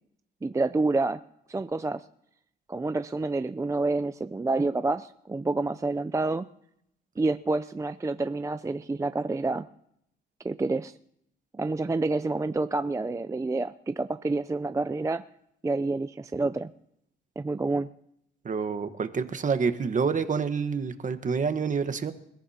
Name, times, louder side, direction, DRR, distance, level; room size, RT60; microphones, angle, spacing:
voice 1, 0.4-1.2 1.5-2.0 2.7-6.5 7.2-9.7 10.4-10.9 11.5-15.2 15.6-16.7 17.4-17.9, right 3 dB, 15° right, 11 dB, 0.5 m, -28 dB
voice 2, 18.4-22.1, right 5 dB, 40° right, 9 dB, 1.3 m, -27 dB
28.5 x 14.5 x 2.9 m, 0.77 s
cardioid pair, 90°, 20 cm